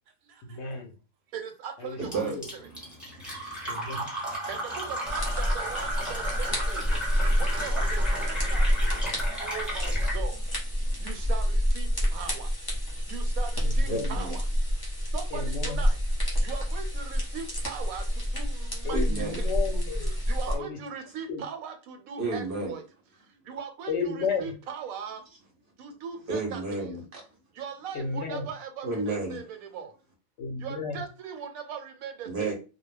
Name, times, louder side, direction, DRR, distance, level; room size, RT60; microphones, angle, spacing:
voice 1, 0.5-1.0 1.8-2.4 3.7-4.0 13.6-14.1 15.3-15.8 18.8-20.2 20.5-20.8 21.3-21.4 23.9-24.5 27.9-28.5 30.4-31.1, left 4 dB, 65° left, 0.8 m, -33 dB
voice 2, 1.3-2.2 4.5-6.8 7.4-8.7 9.4-10.4 11.0-12.5 13.1-14.4 15.1-16.0 16.4-19.0 19.3-19.5 20.3-22.8 23.5-25.2 25.8-26.8 27.6-29.4 29.7-29.9 30.6-32.5, right 7 dB, 85° right, 1.0 m, -39 dB
voice 3, 2.0-4.0 10.8-11.2 13.9-14.4 18.9-19.4 20.5-20.6 22.2-22.8 23.4-23.5 26.3-27.4 28.8-29.4 32.3-32.5, right 2 dB, 55° right, 0.6 m, -33 dB
Fill (with liquid), 2.1-10.2, right 1 dB, ahead, 0.9 m, -34 dB
sound 1, 5.1-20.6, equal, 25° left, 0.5 m, -28 dB
2.3 x 2.1 x 3.1 m
omnidirectional pair, 1.5 m